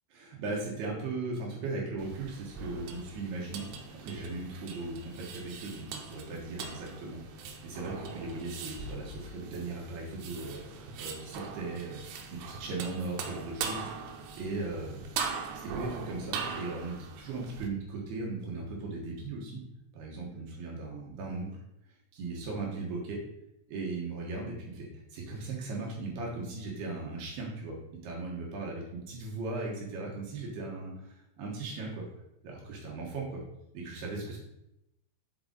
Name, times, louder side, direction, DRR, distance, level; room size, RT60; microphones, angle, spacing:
voice 1, 0.1-13.9 14.4-15.0 15.5-19.6 19.9-21.5 22.1-23.2 23.7-27.8 28.0-32.0 32.4-33.4 33.7-34.4, right 3 dB, 65° right, -2 dB, 3.1 m, -38 dB
sound 1, 2.0-17.7, right 5 dB, 85° right, 3.0 m, -41 dB
7.9 x 4.8 x 3.9 m, 0.84 s
omnidirectional pair, 5.4 m